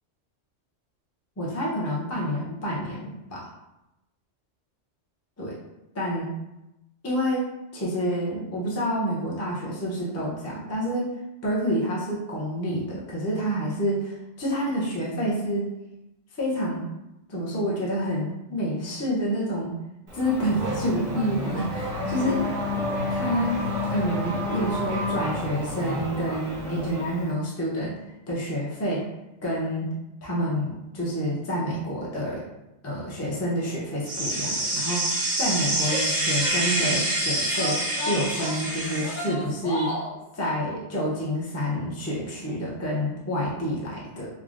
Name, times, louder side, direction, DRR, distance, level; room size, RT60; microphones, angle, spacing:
voice 1, 1.4-3.5 5.4-5.6 5.9-6.3 7.0-11.1 11.4-15.7 16.4-16.9 17.3-19.7 20.1-22.5 23.1-23.6 23.9-28.0 28.3-29.0 29.4-29.9 30.2-32.4 32.8-39.9 40.3-44.3, equal, 20° left, -6 dB, 0.4 m, -28 dB
Race car auto racing / Accelerating revving vroom, 20.1-27.3, left 1 dB, 50° right, 0.6 m, -30 dB
sound 1, 34.0-39.3, right 1 dB, 80° right, 1.1 m, -26 dB
Female speech woman speaking / Yell, 35.8-37.1 37.5-40.2, left 1 dB, 85° left, 1.0 m, -34 dB
3.3 x 2.1 x 2.4 m, 0.93 s
omnidirectional pair, 1.3 m